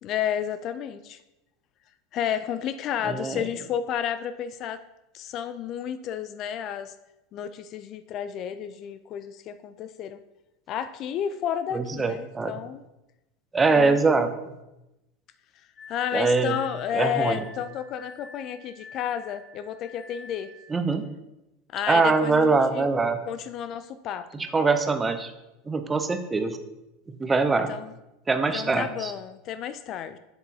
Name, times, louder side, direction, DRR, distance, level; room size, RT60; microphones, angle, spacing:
voice 1, 0.0-1.2 2.1-4.8 5.1-6.9 7.3-10.2 10.7-12.8 13.7-14.0 15.9-20.5 21.7-22.9 23.3-24.5 27.5-27.9 28.5-30.2, left 9 dB, 45° left, 13 dB, 0.4 m, -31 dB
voice 2, 3.0-3.4 11.7-12.5 13.5-14.5 16.1-16.5 16.9-17.4 20.7-21.0 21.9-23.2 24.3-25.3 25.7-26.6 27.2-27.7 28.3-29.1, right 4 dB, 20° right, 8 dB, 0.7 m, -23 dB
Glass, 15.8-20.8, left 2 dB, 30° left, 2.3 m, -48 dB
7.2 x 7.1 x 2.8 m, 0.95 s
hypercardioid pair, 80°, 0 cm